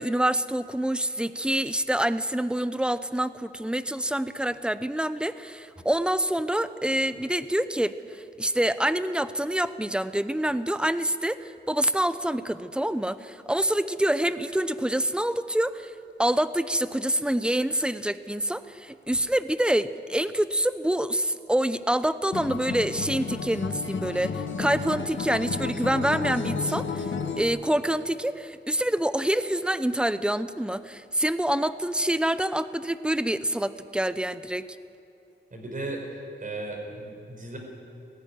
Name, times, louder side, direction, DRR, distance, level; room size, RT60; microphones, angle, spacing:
voice 1, 0.0-15.9 16.2-27.1 27.4-34.6, right 1 dB, 5° right, 13 dB, 0.7 m, -26 dB
Acoustic guitar, 22.3-27.5, left 5 dB, 80° left, 1.4 m, -32 dB
voice 2, 35.5-36.0 36.4-37.6, right 2 dB, 45° right, 1 dB, 5.2 m, -35 dB
18.5 x 15.0 x 10.0 m, 2.7 s
wide cardioid pair, 105°, 19 cm